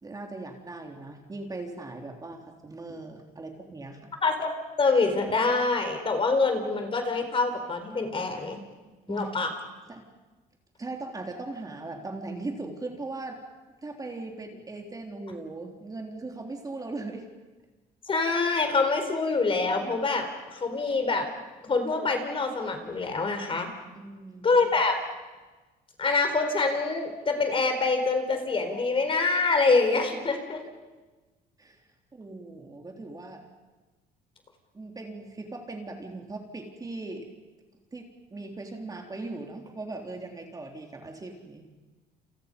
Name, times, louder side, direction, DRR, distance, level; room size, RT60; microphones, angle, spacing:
voice 1, 0.0-4.1 9.1-9.3 9.9-10.1 10.8-13.4 13.8-17.3 23.9-24.7 31.6-31.8 32.1-33.4 34.7-37.3 37.9-41.7, right 2 dB, 20° right, 2 dB, 3.8 m, -39 dB
voice 2, 4.2-4.5 4.8-8.6 9.1-9.5 18.1-20.3 20.5-21.2 21.6-23.7 24.4-25.0 26.0-30.6, left 3 dB, 30° left, 6 dB, 4.3 m, -25 dB
29.5 x 28.0 x 5.4 m, 1.2 s
cardioid pair, 110°, 17 cm